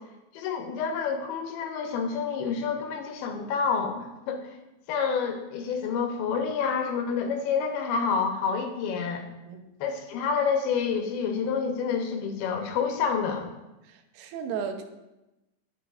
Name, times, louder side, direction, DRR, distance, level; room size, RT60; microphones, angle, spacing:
voice 1, 0.3-4.5 4.9-9.3 9.8-13.5, left 6 dB, 80° left, 4 dB, 2.5 m, -28 dB
voice 2, 13.8-14.8, right 7 dB, 85° right, 6 dB, 2.7 m, -34 dB
12.0 x 6.0 x 2.4 m, 0.99 s
omnidirectional pair, 4.6 m